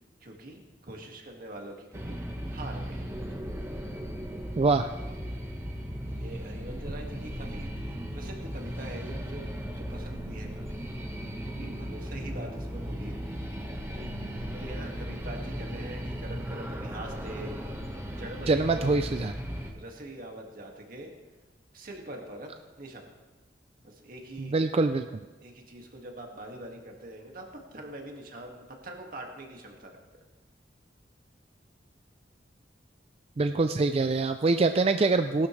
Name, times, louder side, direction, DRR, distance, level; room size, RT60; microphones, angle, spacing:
voice 1, 0.2-2.2 2.5-3.4 6.1-10.8 11.4-13.2 13.9-14.2 14.5-17.6 18.2-18.8 19.7-21.1 21.7-22.5 22.8-23.1 23.8-24.6 25.4-30.2, right 1 dB, 50° right, 1 dB, 2.0 m, -43 dB
sound 1, 1.9-19.7, equal, 15° right, 1.4 m, -36 dB
voice 2, 4.6-4.9 18.5-19.3 24.4-25.1 33.4-35.5, right 3 dB, 35° right, 8 dB, 0.4 m, -24 dB
19.0 x 12.0 x 3.3 m, 1.2 s
head